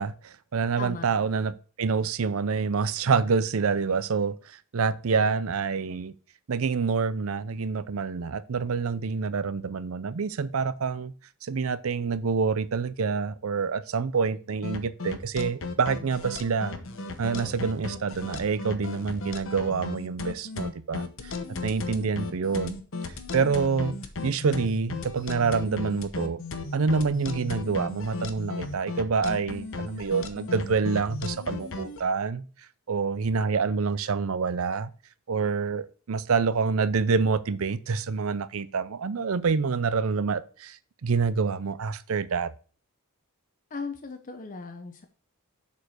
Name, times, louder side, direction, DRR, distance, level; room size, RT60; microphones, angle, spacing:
voice 1, 0.0-6.1 6.5-11.1 11.4-16.7 17.2-21.3 21.6-22.8 23.3-24.0 24.2-26.4 26.7-32.4 32.9-34.9 35.3-42.5, right 5 dB, 70° right, 0.5 m, -27 dB
voice 2, 0.8-1.1 43.7-45.0, left 4 dB, 40° left, 0.7 m, -37 dB
sound 1, 14.6-32.0, left 3 dB, 65° left, 1.0 m, -35 dB
7.2 x 4.6 x 6.3 m
head